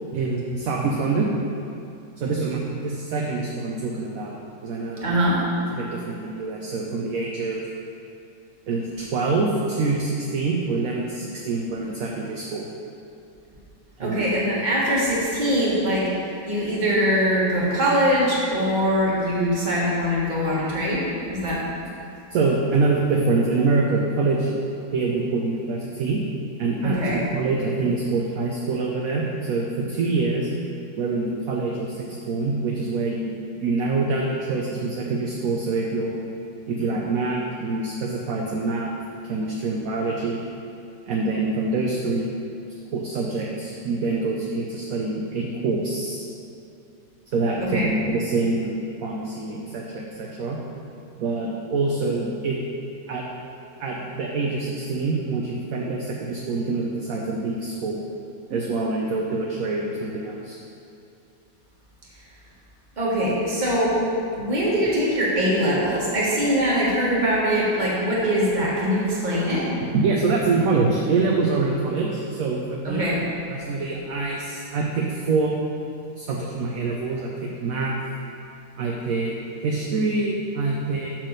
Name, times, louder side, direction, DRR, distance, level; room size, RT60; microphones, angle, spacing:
voice 1, 0.1-1.3 2.2-4.4 4.6-5.1 5.7-7.7 8.7-12.6 14.0-14.3 22.3-24.6 24.9-26.2 26.6-30.5 31.0-33.3 33.6-36.2 36.7-38.9 39.2-40.5 41.1-42.3 42.9-46.3 47.3-48.7 49.0-50.6 51.2-52.6 53.1-53.2 53.8-58.0 58.5-60.6 69.9-73.0 73.5-75.6 76.1-77.9 78.8-79.4 79.6-81.1, right 3 dB, 65° right, -2 dB, 1.0 m, -25 dB
voice 2, 5.0-5.4 14.0-16.1 16.5-21.7 26.8-27.2 47.6-47.9 63.0-64.0 64.4-69.8 72.8-73.2, equal, 30° right, -6 dB, 1.5 m, -22 dB
5.8 x 4.5 x 6.4 m, 2.7 s
omnidirectional pair, 1.8 m